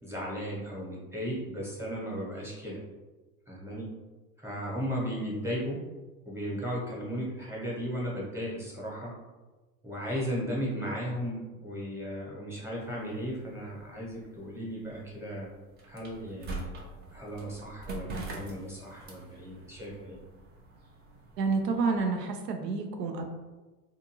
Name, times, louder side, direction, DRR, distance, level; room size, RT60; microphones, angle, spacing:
voice 1, 0.0-2.8 3.5-3.9 4.4-5.8 6.2-9.1 9.8-15.5 15.9-20.2, equal, 5° right, -6 dB, 0.9 m, -36 dB
sound 1, 12.8-21.8, right 2 dB, 25° right, 0.4 m, -44 dB
voice 2, 21.4-23.2, right 4 dB, 90° right, 4 dB, 0.6 m, -29 dB
2.5 x 2.4 x 2.9 m, 1.2 s
hypercardioid pair, 95°, 47 cm